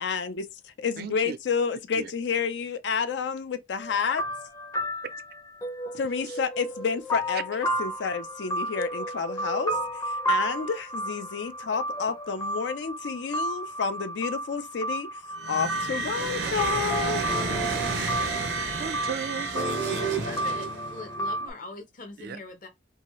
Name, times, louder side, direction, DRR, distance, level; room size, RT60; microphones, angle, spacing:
voice 1, 0.0-4.2 6.0-15.1 15.5-17.2, left 6 dB, 80° left, 0.4 m, -30 dB
voice 2, 1.0-1.4 1.9-2.1 6.3-6.4 18.8-20.0 22.2-22.4, right 7 dB, 55° right, 0.3 m, -36 dB
sound 1, 3.7-21.5, right 1 dB, 20° left, 0.5 m, -32 dB
sound 2, 15.4-21.0, right 4 dB, 85° right, 0.7 m, -31 dB
voice 3, 20.0-22.7, left 3 dB, 45° left, 0.8 m, -42 dB
2.7 x 2.3 x 3.0 m
head